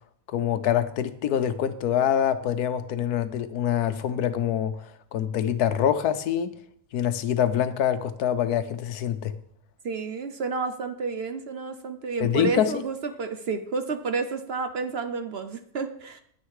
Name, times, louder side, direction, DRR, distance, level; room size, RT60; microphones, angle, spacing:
voice 1, 0.3-6.5 6.9-9.3 12.2-12.8, left 9 dB, 85° left, 1.3 m, -25 dB
voice 2, 9.8-16.2, right 4 dB, 55° right, 0.8 m, -30 dB
10.0 x 9.7 x 4.8 m
omnidirectional pair, 1.6 m